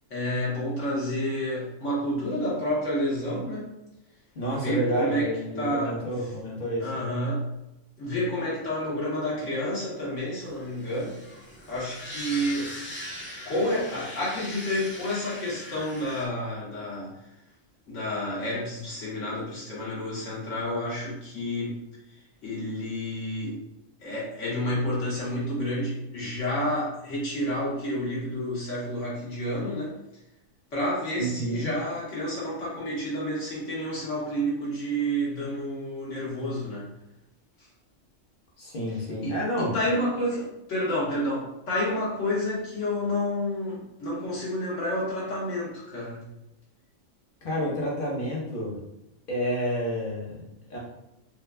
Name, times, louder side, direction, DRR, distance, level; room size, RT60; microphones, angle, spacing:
voice 1, 0.1-3.7 4.5-5.3 5.6-6.4 6.8-7.5 8.0-11.2 11.7-12.7 13.4-17.1 17.9-21.8 22.4-23.6 24.0-29.9 30.7-36.9 39.2-46.2, equal, 75° left, -7 dB, 1.5 m, -30 dB
voice 2, 4.3-7.0 31.2-31.7 38.6-39.7 47.4-48.8 49.3-50.8, equal, 45° left, -4 dB, 1.1 m, -30 dB
sound 1, 10.4-16.3, left 1 dB, 15° left, 0.4 m, -40 dB
4.3 x 2.4 x 2.2 m, 0.89 s
omnidirectional pair, 1.3 m